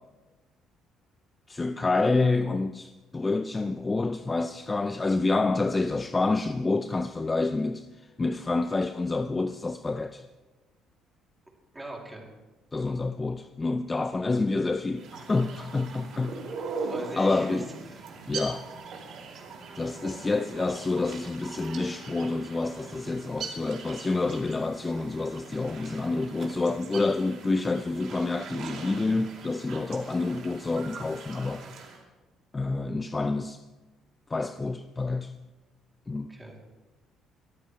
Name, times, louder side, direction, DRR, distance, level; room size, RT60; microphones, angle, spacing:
voice 1, 1.5-10.3 12.7-16.4 16.7-16.9 17.2-17.7 18.3-18.7 19.7-31.6 32.5-33.6 34.3-35.3 36.1-36.3, left 3 dB, 15° left, 10 dB, 0.4 m, -28 dB
voice 2, 11.7-12.3 16.9-17.6 36.3-36.6, right 1 dB, 10° right, -1 dB, 2.7 m, -40 dB
sound 1, 14.9-32.0, right 4 dB, 65° right, 2.8 m, -41 dB
23.0 x 13.5 x 3.1 m, 1.2 s
cardioid pair, 150°, 0 cm